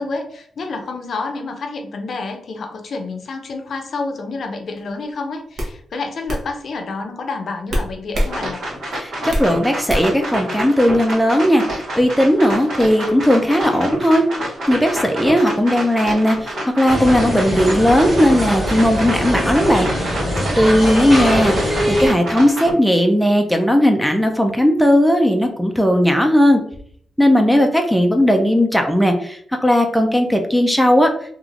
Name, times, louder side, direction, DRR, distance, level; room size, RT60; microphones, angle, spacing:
voice 1, 0.0-8.6, left 3 dB, 55° left, 4 dB, 0.5 m, -29 dB
sound 1, 4.8-5.0 5.6-5.7 6.3-6.4 7.7-8.3 8.7-9.5 9.9-10.2, equal, 65° right, 0.8 m, -23 dB
sound 2, 8.1-22.7, equal, 80° right, 1.1 m, -28 dB
voice 2, 9.0-14.2 14.7-19.9 20.6-26.6 27.2-31.1, equal, ahead, 3 dB, 0.3 m, -16 dB
sound 3, 16.9-22.1, equal, 30° right, 1.2 m, -22 dB
3.1 x 2.4 x 2.4 m, 0.62 s
wide cardioid pair, 125°, 0 cm